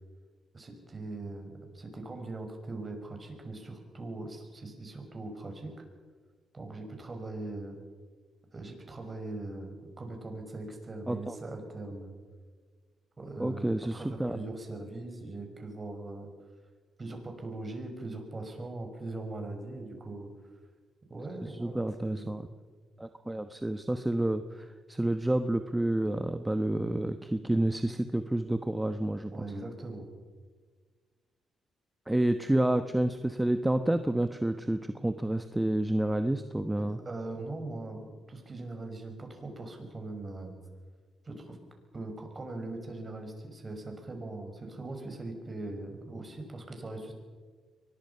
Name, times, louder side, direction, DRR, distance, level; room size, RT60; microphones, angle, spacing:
voice 1, 0.5-5.7 6.5-7.8 8.5-12.1 13.2-16.3 17.0-20.3 21.1-22.3 29.3-30.1 36.8-40.5 41.2-41.6 41.9-47.1, right 2 dB, 35° right, 4 dB, 5.7 m, -40 dB
voice 2, 11.1-11.4 13.4-14.4 21.4-22.5 23.0-29.3 32.1-37.0, right 1 dB, 10° right, 9 dB, 1.1 m, -29 dB
23.5 x 20.5 x 5.7 m, 1.5 s
cardioid pair, 75°, 0 cm